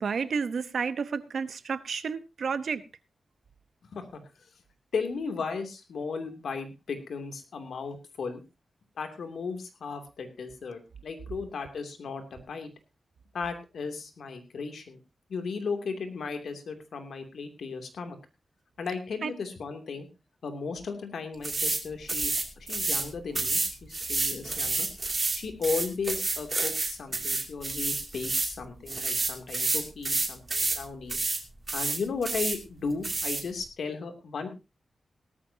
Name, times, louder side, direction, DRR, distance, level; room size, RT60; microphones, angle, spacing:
voice 1, 0.0-2.8 19.2-19.3, right 5 dB, 70° right, 14 dB, 1.0 m, -31 dB
voice 2, 3.9-4.2 4.9-8.4 9.0-12.7 13.3-15.0 15.3-18.2 18.8-20.1 20.4-22.3 22.7-24.9 25.3-31.2 31.7-34.5, left 4 dB, 85° left, 6 dB, 2.8 m, -35 dB
sound 1, 21.4-21.8 22.1-23.1 23.3-28.5 28.9-30.8 31.1-31.4 31.7-32.6 33.0-33.4, right 3 dB, 30° right, 2.6 m, -29 dB
18.0 x 13.5 x 2.8 m, 0.27 s
wide cardioid pair, 115°, 0 cm